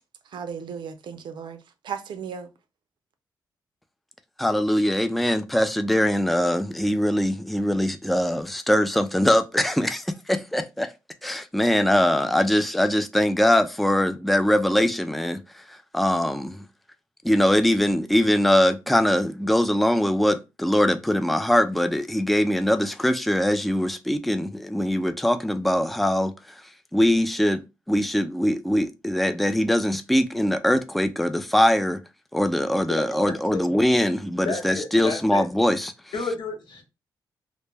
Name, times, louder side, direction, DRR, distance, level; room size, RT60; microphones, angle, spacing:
voice 1, 0.2-2.5, right 7 dB, 70° right, 0.4 m, -35 dB
voice 2, 4.4-10.9 11.2-15.4 15.9-16.6 17.2-26.3 26.9-32.0 32.3-35.9, left 1 dB, ahead, 0.3 m, -22 dB
voice 3, 32.9-33.6 34.4-35.4 36.1-36.8, left 4 dB, 70° left, 0.9 m, -31 dB
2.1 x 2.1 x 3.2 m
cardioid pair, 55°, 8 cm